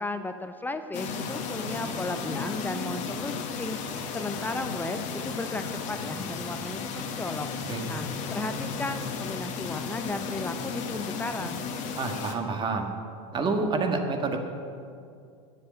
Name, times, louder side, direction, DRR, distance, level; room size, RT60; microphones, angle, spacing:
voice 1, 0.0-11.7, left 2 dB, 10° left, 9 dB, 0.6 m, -35 dB
sound 1, 0.9-12.4, left 5 dB, 50° left, 1.5 m, -34 dB
voice 2, 12.0-12.9 13.3-14.4, right 3 dB, 30° right, 4 dB, 1.7 m, -28 dB
10.0 x 7.6 x 8.7 m, 2.4 s
hypercardioid pair, 95°, 16 cm